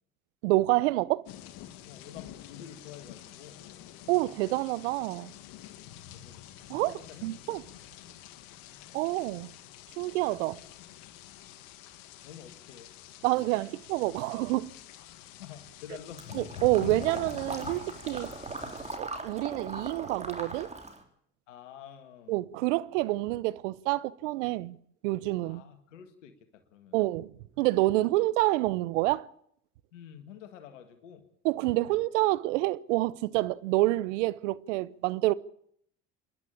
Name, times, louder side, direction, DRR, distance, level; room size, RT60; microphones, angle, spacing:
voice 1, 0.4-1.2 4.1-5.3 6.7-6.9 7.2-7.6 8.9-9.5 10.0-10.6 13.2-14.7 16.4-18.3 19.0-20.7 22.3-24.8 25.0-25.6 26.9-27.3 27.6-29.3 31.4-35.3, right 18 dB, 80° right, 0.8 m, -28 dB
sound 1, 1.3-19.0, left 12 dB, 70° left, 1.6 m, -47 dB
voice 2, 1.8-3.6 6.1-6.4 6.8-7.3 12.2-12.9 13.2-13.8 15.0-16.4 21.5-22.4 25.4-26.4 26.7-27.1 29.9-31.2, left 9 dB, 90° left, 1.8 m, -49 dB
Water / Liquid, 16.2-21.0, right 3 dB, 20° right, 3.6 m, -39 dB
27.0 x 11.0 x 8.7 m
hypercardioid pair, 65°, 36 cm